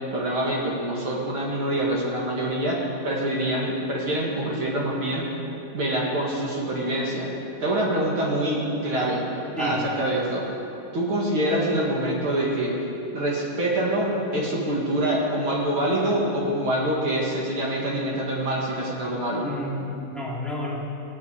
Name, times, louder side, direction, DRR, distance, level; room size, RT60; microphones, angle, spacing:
voice 1, 0.1-5.3 5.7-7.3 7.6-9.3 9.6-10.5 10.9-12.8 13.1-19.5, right 1 dB, 45° right, -4 dB, 2.5 m, -25 dB
voice 2, 9.6-9.9 19.4-20.8, left 1 dB, ahead, -5 dB, 1.7 m, -30 dB
18.0 x 7.0 x 8.2 m, 2.9 s
omnidirectional pair, 3.8 m